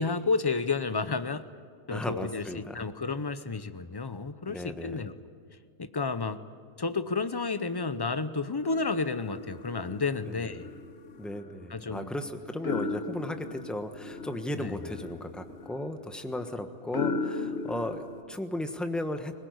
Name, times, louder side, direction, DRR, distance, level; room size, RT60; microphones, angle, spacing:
voice 1, 0.0-1.4 1.9-5.1 5.8-6.4 6.8-10.7 11.7-12.1 14.5-14.8, left 4 dB, 25° left, 12 dB, 0.5 m, -31 dB
voice 2, 1.9-2.9 4.5-5.0 10.3-10.5 11.2-19.3, left 1 dB, ahead, 7 dB, 1.1 m, -36 dB
sound 1, 8.6-18.2, left 3 dB, 55° left, 1.4 m, -37 dB
21.5 x 20.0 x 9.5 m, 2.1 s
omnidirectional pair, 1.4 m